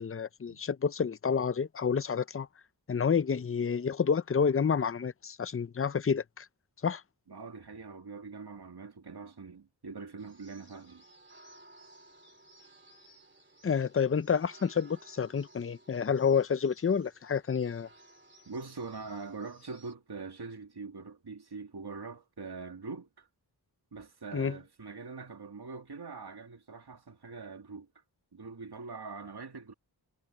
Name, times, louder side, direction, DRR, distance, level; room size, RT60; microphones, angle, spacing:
voice 1, 0.0-2.5 2.9-6.5 6.8-7.0 13.6-17.9 24.3-24.6, left 6 dB, 30° left, 0.6 m, -29 dB
voice 2, 7.3-11.0 18.5-23.3 23.9-28.0 28.3-29.7, right 4 dB, 65° right, 2.4 m, -43 dB
sound 1, 10.2-19.9, right 2 dB, 25° right, 3.2 m, -58 dB
wide cardioid pair, 75°, 42 cm